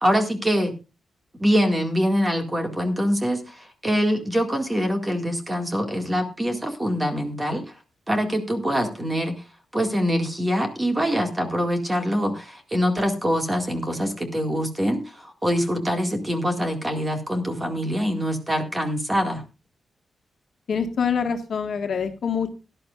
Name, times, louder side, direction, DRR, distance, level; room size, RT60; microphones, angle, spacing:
voice 1, 0.0-0.8 1.4-7.7 8.1-9.4 9.7-19.4, equal, 15° right, 5 dB, 2.0 m, -24 dB
voice 2, 20.7-22.5, left 6 dB, 60° left, 4 dB, 1.6 m, -25 dB
18.0 x 11.5 x 2.4 m, 0.29 s
wide cardioid pair, 160°, 0 cm